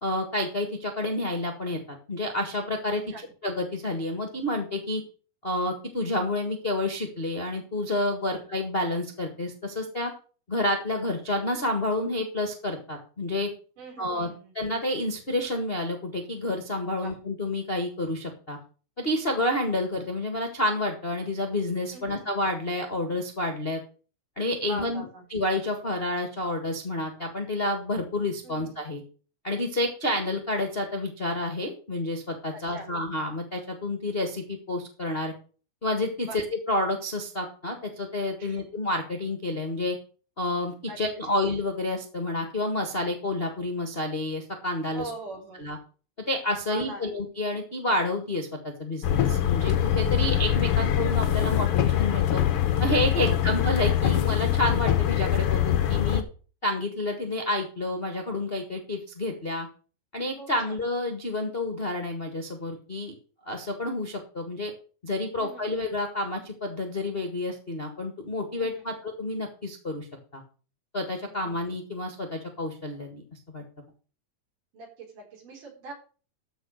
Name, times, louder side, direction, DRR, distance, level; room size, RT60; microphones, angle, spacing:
voice 1, 0.0-3.0 3.4-5.0 5.4-10.1 10.5-13.5 14.0-14.3 14.5-18.6 19.0-23.8 24.4-25.0 25.3-29.0 29.4-35.3 35.8-40.0 40.4-45.1 45.6-45.8 46.3-52.4 52.8-56.2 56.6-59.7 60.1-63.1 63.4-64.7 65.0-70.1 70.3-70.4 70.9-73.6, left 1 dB, 50° left, 5 dB, 0.6 m, -29 dB
voice 2, 13.8-14.5 17.0-17.2 21.9-22.3 24.6-25.2 28.4-28.7 32.5-32.9 36.2-36.4 38.4-38.6 40.9-41.0 44.9-45.6 46.7-47.1 53.1-53.4 60.4-60.8 65.4-65.6 68.6-68.8 71.3-71.4 74.7-75.9, right 2 dB, 60° right, -1 dB, 5.7 m, -41 dB
sound 1, 49.0-56.2, left 11 dB, 85° left, 1.2 m, -23 dB
13.5 x 5.2 x 6.5 m, 0.39 s
omnidirectional pair, 4.2 m